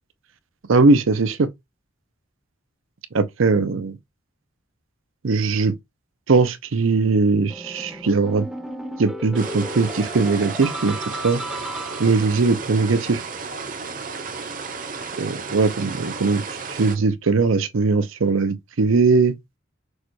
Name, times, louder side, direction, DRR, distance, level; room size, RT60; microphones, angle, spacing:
voice 1, 0.7-1.5 3.1-4.0 5.2-5.7 6.3-8.5 9.0-11.0 11.2-11.4 12.0-13.2 15.2-16.4 16.7-19.3, right 4 dB, 80° right, 0.6 m, -20 dB
sound 1, 7.5-12.4, equal, ahead, 0.6 m, -35 dB
sound 2, 9.4-17.0, right 4 dB, 45° right, 0.8 m, -33 dB
6.3 x 2.3 x 3.1 m
head